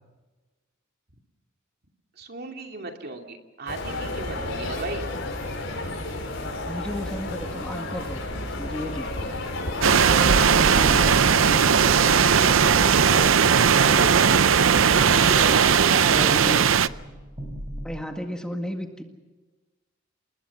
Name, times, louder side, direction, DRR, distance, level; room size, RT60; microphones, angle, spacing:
voice 1, 2.2-5.0 10.9-11.2 12.1-14.5 15.1-16.5, right 3 dB, 55° right, 3 dB, 2.7 m, -34 dB
sound 1, 3.7-15.8, left 2 dB, 70° left, 6.0 m, -32 dB
voice 2, 6.7-9.4 10.7-11.5 16.0-16.8 17.8-19.0, equal, 5° left, 3 dB, 1.8 m, -34 dB
sound 2, 9.8-16.9, right 7 dB, 75° right, 0.6 m, -18 dB
sound 3, 16.9-17.9, equal, 25° right, 5.3 m, -38 dB
29.0 x 20.0 x 6.0 m, 1.2 s
head